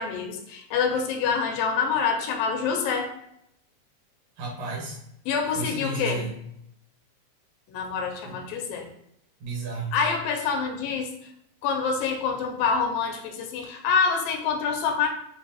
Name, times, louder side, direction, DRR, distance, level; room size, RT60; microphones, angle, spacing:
voice 1, 0.0-3.1 5.3-6.2 7.7-8.9 9.9-11.1 11.6-15.1, left 5 dB, 85° left, 4 dB, 2.4 m, -26 dB
voice 2, 4.4-5.0 5.5-6.3 8.2-8.3 9.4-10.0, right 3 dB, 75° right, -3 dB, 3.0 m, -32 dB
7.4 x 2.6 x 2.8 m, 0.75 s
omnidirectional pair, 4.0 m